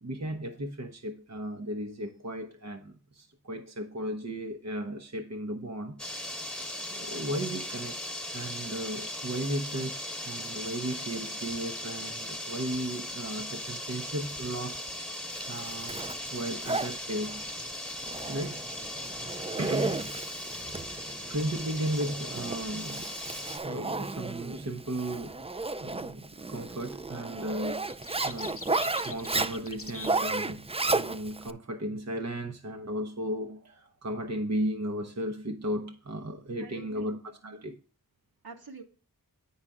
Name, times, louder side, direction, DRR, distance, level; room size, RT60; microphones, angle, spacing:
voice 1, 0.0-6.0 6.2-6.4 6.9-8.0 8.3-16.0 16.3-17.4 18.3-18.7 19.6-20.2 20.5-20.6 21.2-25.4 25.8-27.9 28.2-37.8, right 1 dB, 45° right, 0.8 m, -35 dB
sound 1, 6.0-23.6, left 1 dB, 5° left, 1.2 m, -38 dB
Zipper (clothing), 15.3-31.5, right 3 dB, 15° right, 0.4 m, -34 dB
sound 2, 25.3-25.5 26.7-27.0 27.4-30.9, left 4 dB, 35° left, 0.8 m, -44 dB
voice 2, 36.6-37.6 38.4-38.8, right 4 dB, 75° right, 1.6 m, -46 dB
8.7 x 5.6 x 3.6 m
wide cardioid pair, 45°, 37 cm